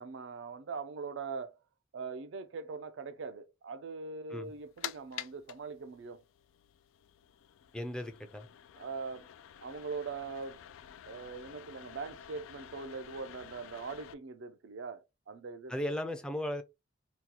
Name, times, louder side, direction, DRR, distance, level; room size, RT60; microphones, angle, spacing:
voice 1, 0.0-1.6 1.9-6.2 8.7-9.2 9.6-10.6 11.1-16.0, right 4 dB, 65° right, 0.4 m, -42 dB
sound 1, 4.4-14.1, left 10 dB, 80° left, 0.3 m, -49 dB
voice 2, 7.7-8.5 15.7-16.6, left 1 dB, 5° left, 0.4 m, -36 dB
2.8 x 2.3 x 3.8 m
head